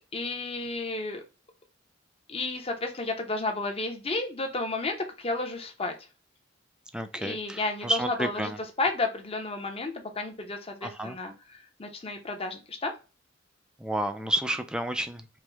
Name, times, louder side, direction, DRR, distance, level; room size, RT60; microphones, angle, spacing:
voice 1, 0.1-1.2 2.3-5.9 7.1-8.5 8.8-12.9, left 2 dB, 30° left, 4 dB, 0.8 m, -32 dB
voice 2, 6.9-8.6 10.8-11.2 13.8-15.4, right 1 dB, 5° right, 8 dB, 0.3 m, -31 dB
4.6 x 2.1 x 3.3 m, 0.31 s
head